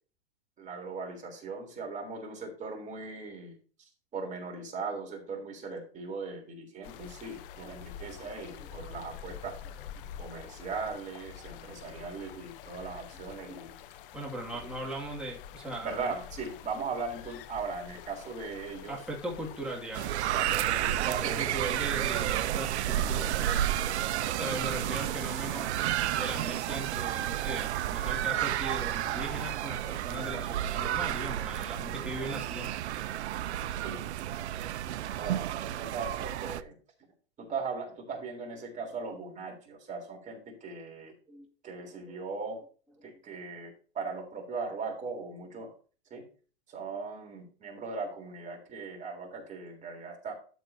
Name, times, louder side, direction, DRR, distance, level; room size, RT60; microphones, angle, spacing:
voice 1, 0.6-9.6 10.2-13.7 14.5-14.7 15.8-19.0 20.3-21.5 24.2-25.1 33.7-34.0 35.1-36.7 37.4-41.1 41.6-42.6 43.0-45.7 46.1-46.2 46.7-50.3, right 4 dB, 20° right, 1 dB, 3.6 m, -39 dB
sound 1, 6.8-20.6, left 9 dB, 50° left, 0.9 m, -47 dB
voice 2, 14.1-16.1 18.9-20.1 21.1-23.9 24.4-25.7 26.1-32.7 41.3-41.8, right 1 dB, 5° right, -3 dB, 2.2 m, -39 dB
sound 2, 19.9-36.6, right 12 dB, 70° right, 0.7 m, -31 dB
12.5 x 7.2 x 2.7 m, 0.38 s
hypercardioid pair, 135°, 35 cm